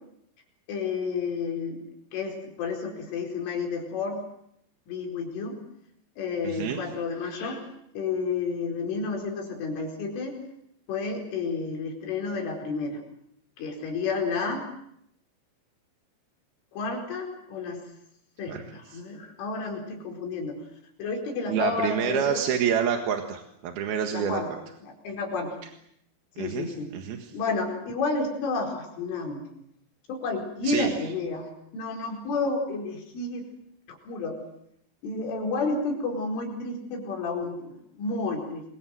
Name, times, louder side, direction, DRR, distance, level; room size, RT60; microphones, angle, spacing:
voice 1, 0.7-1.8 2.1-4.2 4.9-5.6 6.2-7.6 8.0-10.4 10.9-13.0 13.6-14.7 16.7-17.8 18.4-20.6 21.0-22.4 24.1-24.5 24.8-25.5 26.4-26.9 27.3-29.4 30.1-33.4 34.1-34.4 35.0-38.6, left 4 dB, 70° left, 1 dB, 7.1 m, -31 dB
voice 2, 6.4-6.8 18.5-18.6 18.9-19.0 21.5-24.4 26.4-27.3 30.6-30.9, right 8 dB, 60° right, 5 dB, 3.1 m, -28 dB
27.5 x 22.5 x 7.8 m, 0.74 s
omnidirectional pair, 5.8 m